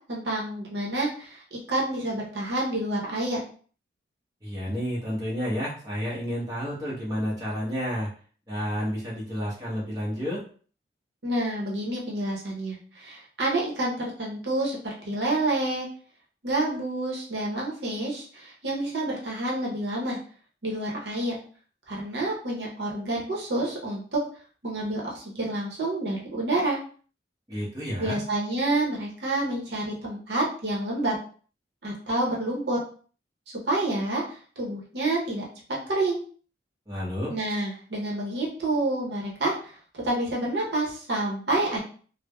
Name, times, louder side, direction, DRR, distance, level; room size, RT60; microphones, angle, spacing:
voice 1, 0.1-3.4 11.2-15.9 16.4-20.2 20.6-21.4 21.9-24.2 24.6-26.8 28.0-31.1 31.8-32.8 33.6-35.4 35.9-36.2 37.3-41.8, right 2 dB, 65° right, -3 dB, 0.8 m, -28 dB
voice 2, 4.4-8.1 8.5-10.4 27.5-28.2 36.9-37.3, equal, 20° right, -6 dB, 0.8 m, -30 dB
3.2 x 2.0 x 2.2 m, 0.43 s
head